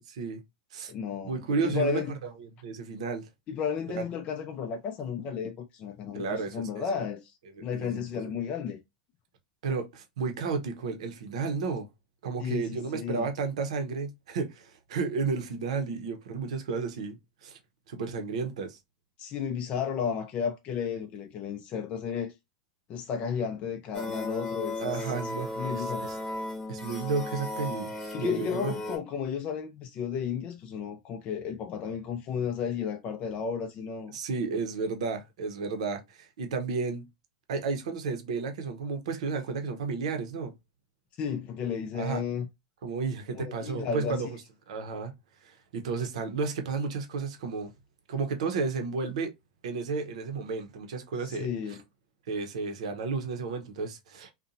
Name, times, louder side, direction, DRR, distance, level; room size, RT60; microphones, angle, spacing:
voice 1, 0.1-0.4 0.7-0.9 1.2-2.0 2.6-3.3 3.9-4.0 6.1-6.8 7.6-8.0 9.6-11.9 12.2-17.6 17.9-18.8 24.8-26.2 26.7-28.7 34.1-37.0 37.5-40.5 41.9-42.2 42.8-44.4 44.7-45.1 45.4-47.7 48.1-49.3 49.6-51.8 52.3-54.3, right 4 dB, 75° right, 0.6 m, -32 dB
voice 2, 0.9-1.4 1.6-2.1 3.5-8.8 12.4-13.3 19.2-22.3 22.9-25.3 25.6-26.1 28.1-34.2 41.2-42.5 43.3-44.2 51.2-51.8, left 7 dB, 40° left, 0.4 m, -33 dB
sound 1, 23.9-29.0, left 1 dB, 10° left, 0.9 m, -35 dB
2.7 x 2.1 x 2.5 m
hypercardioid pair, 105°, 3 cm